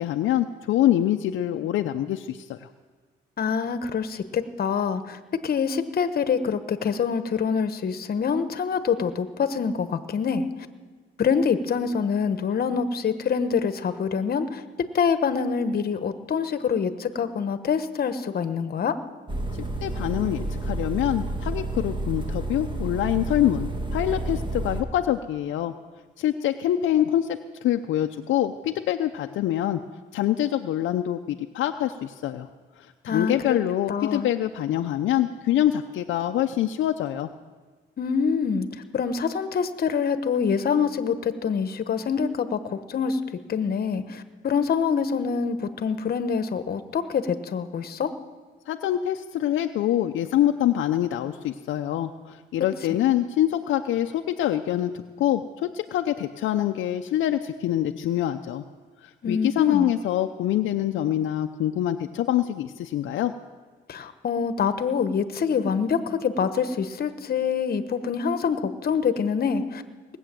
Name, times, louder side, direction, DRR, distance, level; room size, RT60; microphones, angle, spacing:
voice 1, 0.0-2.7 19.8-25.7 26.2-29.8 30.1-32.5 33.0-37.3 48.7-58.6 59.3-63.3, left 12 dB, 75° left, 5 dB, 0.6 m, -25 dB
voice 2, 3.4-10.5 11.2-14.6 14.9-19.0 33.1-33.6 33.9-34.3 38.0-38.7 38.9-43.2 43.5-48.1 59.2-59.9 63.9-69.8, left 6 dB, 50° left, 11 dB, 1.1 m, -25 dB
sound 1, 19.3-24.8, right 2 dB, 25° right, 1.8 m, -30 dB
19.0 x 8.0 x 7.6 m, 1.4 s
cardioid pair, 90°, 20 cm